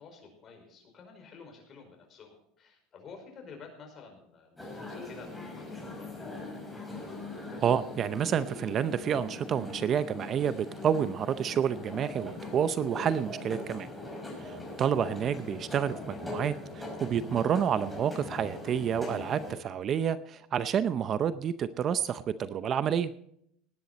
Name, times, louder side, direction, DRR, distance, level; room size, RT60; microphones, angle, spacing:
voice 1, 0.0-6.3 14.4-14.9, left 5 dB, 35° left, 3 dB, 5.1 m, -51 dB
sound 1, 4.6-19.6, left 2 dB, 10° left, 5.3 m, -41 dB
voice 2, 7.6-13.9 14.4-23.1, right 8 dB, 40° right, 14 dB, 0.6 m, -29 dB
18.5 x 10.0 x 4.2 m, 0.71 s
supercardioid pair, 125°, 0 cm